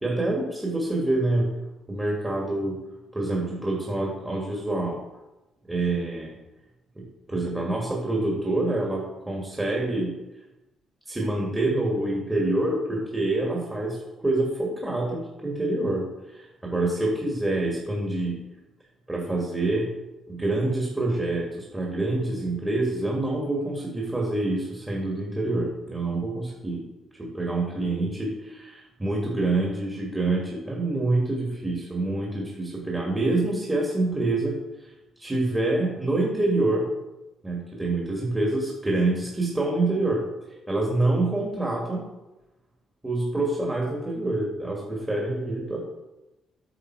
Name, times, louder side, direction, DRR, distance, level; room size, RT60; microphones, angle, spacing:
voice 1, 0.0-1.5 1.9-2.8 3.1-5.0 5.7-6.4 7.0-10.1 11.1-16.1 16.3-18.4 19.1-19.9 20.3-26.8 27.2-34.5 35.2-36.9 37.4-40.2 40.7-42.0 43.0-45.8, right 2 dB, 15° right, -1 dB, 2.1 m, -26 dB
8.9 x 6.8 x 4.7 m, 1.0 s
cardioid pair, 90°, 0 cm